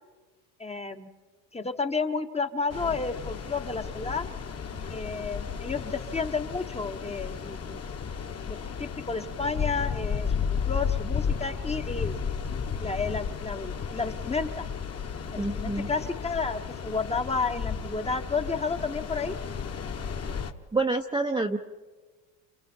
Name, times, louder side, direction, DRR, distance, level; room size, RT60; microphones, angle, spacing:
voice 1, 0.6-1.1 1.5-4.3 4.9-7.8 8.5-12.3 12.8-14.7 15.3-19.3, left 4 dB, 15° left, 8 dB, 1.0 m, -31 dB
sound 1, 2.7-20.5, left 6 dB, 30° left, 1.3 m, -33 dB
voice 2, 15.4-15.9 20.7-21.6, right 3 dB, 10° right, 2 dB, 0.8 m, -27 dB
30.0 x 28.5 x 4.4 m, 1.3 s
supercardioid pair, 110°, 48 cm